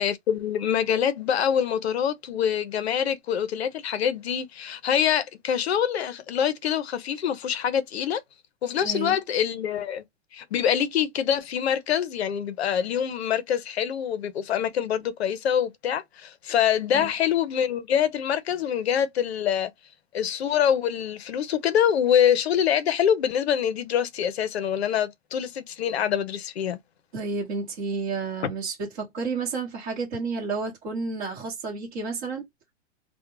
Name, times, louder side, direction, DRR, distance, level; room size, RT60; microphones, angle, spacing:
voice 1, 0.0-8.2 8.6-10.0 10.3-19.7 20.1-26.8, left 9 dB, 55° left, 0.6 m, -25 dB
voice 2, 8.8-9.2 16.9-17.1 27.1-32.5, right 4 dB, 30° right, 1.0 m, -31 dB
2.3 x 2.1 x 3.0 m
hypercardioid pair, 175°, 38 cm